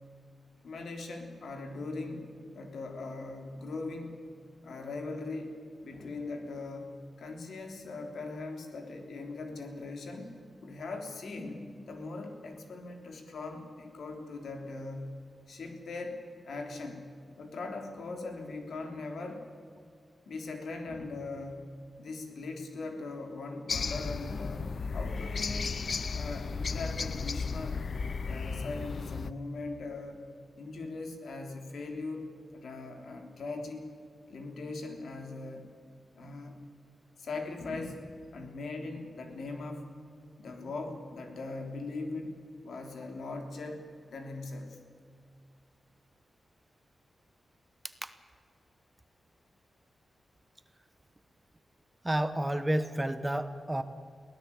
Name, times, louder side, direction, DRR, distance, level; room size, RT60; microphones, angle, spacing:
voice 1, 0.6-2.3 2.5-4.2 4.6-10.3 10.6-15.1 15.5-17.1 17.4-19.4 20.3-25.7 26.1-27.9 28.2-30.2 30.6-32.3 32.5-33.9 34.3-35.7 36.1-36.6 37.2-39.9 40.4-42.4 42.6-44.8, left 3 dB, 70° left, 4 dB, 3.5 m, -40 dB
sound 1, 23.7-29.3, left 5 dB, 45° left, 0.5 m, -34 dB
voice 2, 52.0-53.8, right 1 dB, 10° right, 11 dB, 0.9 m, -30 dB
23.0 x 17.0 x 8.6 m, 2.2 s
wide cardioid pair, 170°, 0 cm